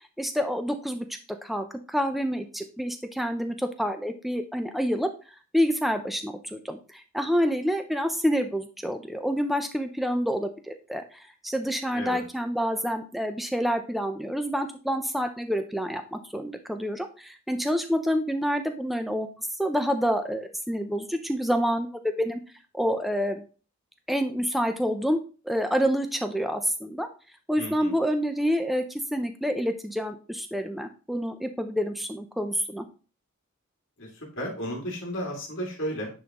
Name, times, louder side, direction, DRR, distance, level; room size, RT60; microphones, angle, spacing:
voice 1, 0.2-1.0 1.4-5.1 5.5-19.3 19.6-22.4 22.7-23.4 24.1-25.2 25.4-27.1 27.5-32.8, equal, ahead, 6 dB, 0.4 m, -28 dB
voice 2, 27.6-27.9 34.0-36.1, equal, 55° left, -2 dB, 2.4 m, -33 dB
9.8 x 3.7 x 2.9 m, 0.36 s
head